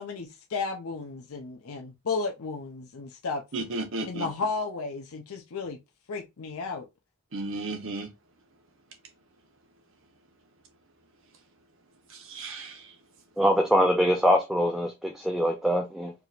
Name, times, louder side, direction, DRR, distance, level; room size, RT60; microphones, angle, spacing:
voice 1, 0.0-3.4 4.0-5.8 6.1-6.9, left 4 dB, 80° left, 0.6 m, -33 dB
voice 2, 3.5-4.3 7.3-8.1 12.1-12.9, right 2 dB, 60° right, 0.9 m, -34 dB
voice 3, 13.4-16.1, equal, ahead, 0.3 m, -23 dB
4.7 x 2.8 x 2.4 m
head